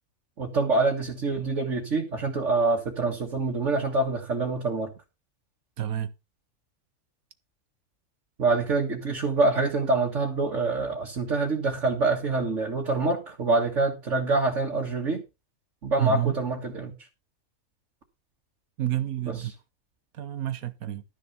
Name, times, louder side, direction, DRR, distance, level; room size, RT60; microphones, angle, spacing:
voice 1, 0.4-4.9 8.4-15.2 15.8-16.9 19.3-19.5, right 3 dB, 55° right, 2.2 m, -26 dB
voice 2, 5.8-6.1 16.0-16.4 18.8-19.5 20.2-21.0, right 13 dB, 80° right, 1.4 m, -28 dB
12.5 x 6.5 x 5.7 m
omnidirectional pair, 1.5 m